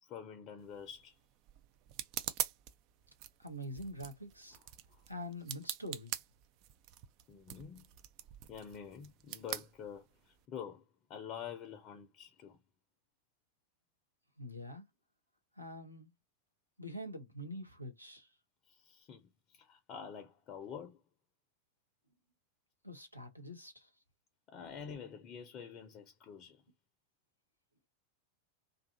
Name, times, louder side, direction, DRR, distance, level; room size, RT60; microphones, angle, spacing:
voice 1, 0.0-1.1 4.5-4.6 4.9-5.0 7.3-7.9 8.5-10.8 11.1-12.6 18.7-21.1 24.5-26.6, left 7 dB, 35° left, 0.6 m, -47 dB
sound 1, 0.6-10.4, right 12 dB, 40° right, 0.3 m, -45 dB
voice 2, 3.4-4.6 5.1-6.2 14.4-14.9 15.6-16.1 16.8-18.3 22.8-23.9, equal, 90° right, 0.7 m, -45 dB
2.6 x 2.4 x 2.6 m
figure-of-eight pair, 90°, 0 cm